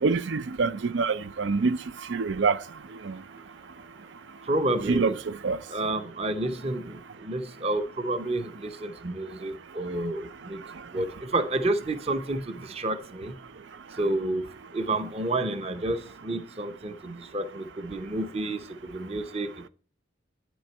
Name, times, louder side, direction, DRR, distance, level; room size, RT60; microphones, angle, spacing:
voice 1, 0.0-1.8 2.1-2.6 3.0-3.2 4.9-5.6, right 4 dB, 65° right, 0.5 m, -25 dB
voice 2, 4.5-5.2 5.7-10.6 10.9-11.1 11.3-13.3 14.0-14.5 14.7-18.6 18.9-19.7, right 2 dB, 35° right, 0.8 m, -30 dB
9.4 x 6.3 x 4.4 m
head